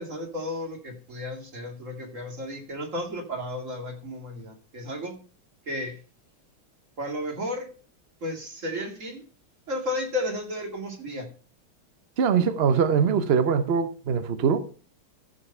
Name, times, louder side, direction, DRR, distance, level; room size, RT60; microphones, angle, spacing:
voice 1, 0.0-5.2 5.7-6.0 7.0-7.7 8.2-9.2 9.7-11.3, left 1 dB, 35° right, 2.6 m, -33 dB
voice 2, 12.2-14.7, right 6 dB, 90° right, 0.5 m, -22 dB
14.0 x 5.4 x 5.5 m
omnidirectional pair, 2.3 m